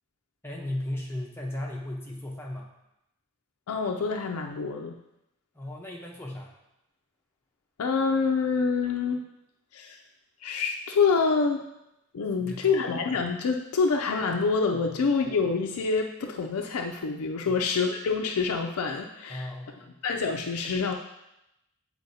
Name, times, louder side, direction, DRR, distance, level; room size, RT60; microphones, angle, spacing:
voice 1, 0.4-2.7 5.5-6.5 12.4-12.8 14.9-15.0 17.5-17.7 19.3-19.9, left 1 dB, 10° left, -2 dB, 0.8 m, -36 dB
voice 2, 3.7-5.0 7.8-9.2 9.7-10.0 10.4-11.6 12.1-19.5 20.0-20.9, left 4 dB, 85° left, 2 dB, 0.4 m, -26 dB
8.1 x 4.4 x 2.7 m, 0.87 s
head